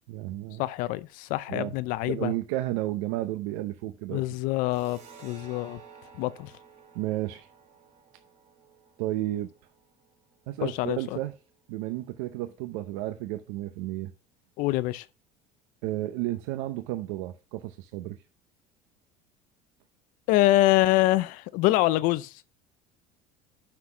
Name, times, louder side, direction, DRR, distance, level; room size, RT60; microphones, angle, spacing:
voice 1, 0.1-0.6 1.5-1.7 2.1-4.2 6.9-7.5 9.0-9.5 10.5-11.3 11.7-14.1 15.8-18.2, right 15 dB, 85° right, 0.7 m, -32 dB
voice 2, 0.6-2.3 4.1-5.8 6.2-6.5 10.6-11.2 14.6-15.1 20.3-22.3, left 17 dB, 55° left, 0.5 m, -25 dB
sound 1, 4.7-11.9, right 6 dB, 45° right, 3.1 m, -54 dB
6.0 x 5.8 x 6.0 m
cardioid pair, 165°, 16 cm